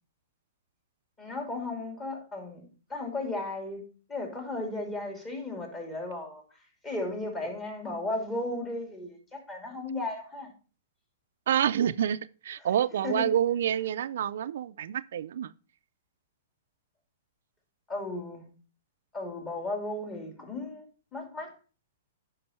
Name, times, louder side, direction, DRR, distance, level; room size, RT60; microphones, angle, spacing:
voice 1, 1.2-3.8 4.1-6.4 6.8-10.5 13.0-13.3 17.9-18.5 19.1-21.5, left 2 dB, 20° left, 2.8 m, -35 dB
voice 2, 11.5-15.5, right 10 dB, 70° right, 0.4 m, -28 dB
9.5 x 5.3 x 4.3 m
hypercardioid pair, 135°, 0 cm